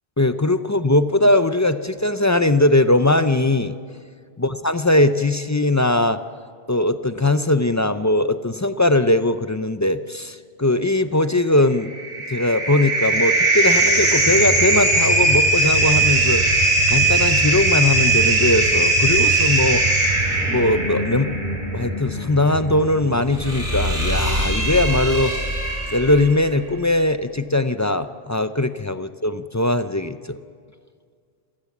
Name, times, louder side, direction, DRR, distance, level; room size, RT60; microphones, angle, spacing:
voice 1, 0.2-3.8 4.4-6.2 6.7-11.9 12.3-19.8 20.5-21.3 21.7-25.3 25.9-30.4, left 2 dB, 25° left, 11 dB, 0.4 m, -20 dB
sound 1, 11.7-26.3, right 2 dB, 55° right, 5.7 m, -20 dB
27.5 x 15.5 x 7.2 m, 2.1 s
omnidirectional pair, 1.1 m